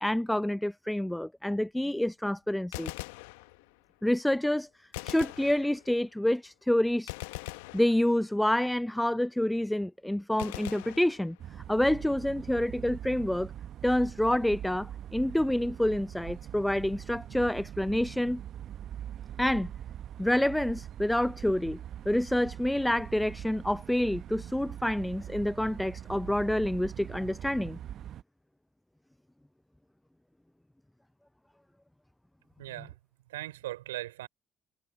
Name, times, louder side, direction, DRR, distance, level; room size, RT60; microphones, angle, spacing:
voice 1, 0.0-2.9 4.0-4.7 5.0-7.1 7.7-11.4 11.7-13.5 13.8-18.4 19.4-19.7 20.2-27.8, left 1 dB, 5° left, 0.5 m, -28 dB
Gunshot gunfire, 2.6-3.9 4.9-6.2 7.1-8.5 10.4-11.7, left 22 dB, 75° left, 1.3 m, -42 dB
sound 1, 11.4-28.2, right 10 dB, 55° right, 0.8 m, -42 dB
voice 2, 32.6-32.9 33.3-34.3, right 16 dB, 85° right, 3.2 m, -39 dB
hypercardioid pair, 50°, 0 cm